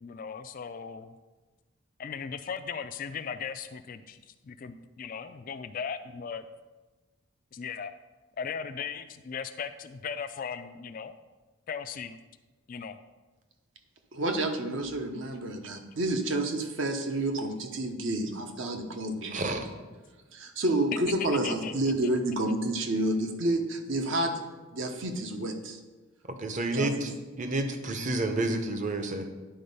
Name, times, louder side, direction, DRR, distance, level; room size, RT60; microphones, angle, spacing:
voice 1, 0.0-1.1 2.0-6.5 7.5-7.9 8.4-11.1 11.7-12.2 12.7-13.0 17.8-18.2 21.3-21.7, left 6 dB, 40° left, 9 dB, 0.3 m, -38 dB
voice 2, 14.1-19.4 20.3-24.4 24.7-25.8 26.7-27.1, right 1 dB, 60° right, 5 dB, 0.9 m, -29 dB
voice 3, 19.3-19.7 26.3-27.1 27.4-29.3, right 2 dB, 35° right, 6 dB, 0.8 m, -30 dB
10.0 x 4.2 x 5.4 m, 1.2 s
head